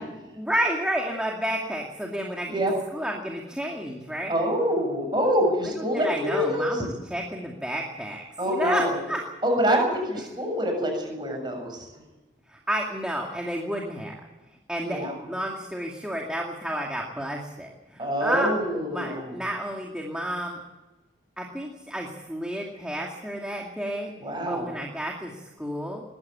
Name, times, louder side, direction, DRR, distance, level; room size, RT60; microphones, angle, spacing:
voice 1, 0.4-2.6 2.9-4.3 6.0-9.2 12.5-14.1 14.7-18.5 18.9-20.6 21.4-24.1 24.5-26.0, right 1 dB, 5° right, -1 dB, 2.3 m, -31 dB
voice 2, 4.3-6.8 8.4-9.0 9.4-11.9 14.8-15.1 18.0-19.4 24.2-24.7, equal, 25° right, 3 dB, 7.3 m, -26 dB
21.0 x 15.5 x 8.8 m, 1.1 s
head